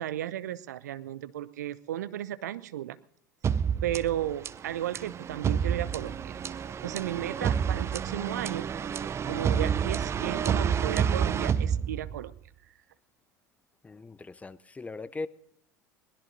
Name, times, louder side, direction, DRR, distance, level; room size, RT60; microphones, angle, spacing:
voice 1, 0.0-3.0 3.8-6.4 6.8-8.7 9.2-12.3, right 12 dB, 70° right, 0.6 m, -34 dB
sound 1, 3.4-12.4, right 7 dB, 30° right, 0.6 m, -29 dB
voice 2, 13.8-15.3, left 3 dB, 15° left, 0.6 m, -39 dB
22.0 x 20.0 x 2.7 m
figure-of-eight pair, 75°, 10 cm